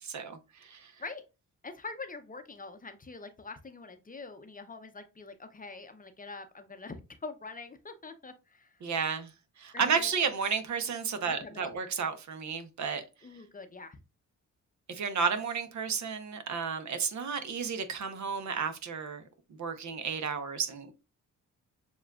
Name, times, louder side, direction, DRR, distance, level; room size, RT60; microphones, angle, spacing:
voice 1, 0.0-0.9 8.8-9.3 9.6-13.0 14.9-19.2 19.5-20.9, right 6 dB, 60° right, 0.8 m, -32 dB
voice 2, 1.6-8.8 9.7-10.1 11.2-11.7 13.2-14.0, left 3 dB, 25° left, 0.7 m, -44 dB
6.9 x 2.4 x 2.3 m
cardioid pair, 75°, 33 cm